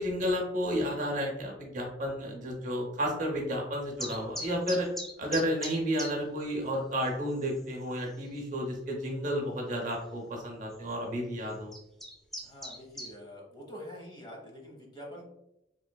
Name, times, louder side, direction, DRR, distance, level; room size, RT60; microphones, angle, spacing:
voice 1, 0.0-4.9 5.2-11.7, equal, 45° right, 0 dB, 0.7 m, -32 dB
sound 1, 4.0-6.1 6.4-6.5 7.0-7.1 7.4-7.8 8.4-8.5 9.8-10.0 10.7-10.9 11.5-13.1, left 1 dB, ahead, 0.4 m, -39 dB
voice 2, 12.4-15.3, equal, 25° left, -2 dB, 0.8 m, -46 dB
3.2 x 3.0 x 2.2 m, 0.85 s
head